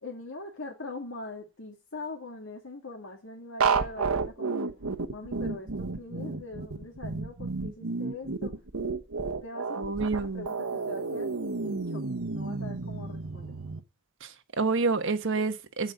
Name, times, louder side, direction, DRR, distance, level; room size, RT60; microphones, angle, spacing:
voice 1, 0.0-4.7 5.1-8.5 9.4-11.3 11.6-12.0 12.3-13.5, left 2 dB, 65° left, 2.3 m, -42 dB
sound 1, 3.6-13.8, right 4 dB, 80° right, 1.2 m, -31 dB
voice 2, 9.8-10.5 14.2-15.9, right 4 dB, 60° right, 1.3 m, -28 dB
15.5 x 5.2 x 8.0 m
head